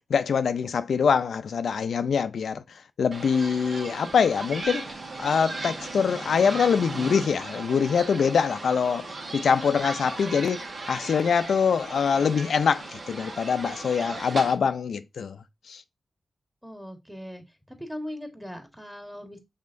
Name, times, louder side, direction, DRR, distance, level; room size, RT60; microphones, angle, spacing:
voice 1, 0.1-4.9 5.2-15.4 15.7-15.8, left 6 dB, 85° left, 0.3 m, -24 dB
sound 1, 3.1-14.5, right 3 dB, 65° right, 1.0 m, -37 dB
voice 2, 16.6-19.4, equal, 5° right, 1.4 m, -39 dB
5.5 x 3.6 x 2.5 m
cardioid pair, 65°, 0 cm